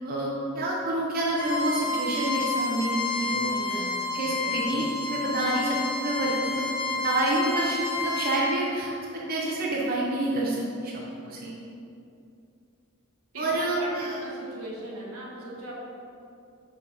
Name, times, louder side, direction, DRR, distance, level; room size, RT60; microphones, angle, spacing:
voice 1, 0.0-3.9 4.1-8.9 9.3-11.5 13.4-14.2, right 1 dB, 45° right, -4 dB, 0.8 m, -28 dB
Bowed string instrument, 1.3-8.4, left 3 dB, 20° left, 1.2 m, -30 dB
voice 2, 3.5-4.2 13.3-13.4 13.8-15.7, right 1 dB, 90° right, -4 dB, 1.6 m, -39 dB
6.4 x 4.1 x 5.5 m, 2.6 s
head